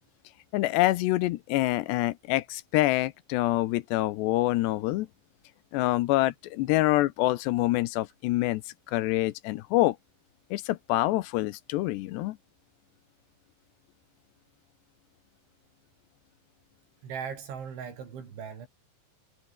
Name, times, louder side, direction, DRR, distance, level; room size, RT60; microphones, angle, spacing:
voice 1, 0.5-5.1 5.7-8.6 8.9-10.0 10.5-12.4, left 17 dB, 80° left, 2.8 m, -26 dB
voice 2, 17.0-18.7, right 7 dB, 85° right, 7.1 m, -38 dB
omnidirectional pair, 5.2 m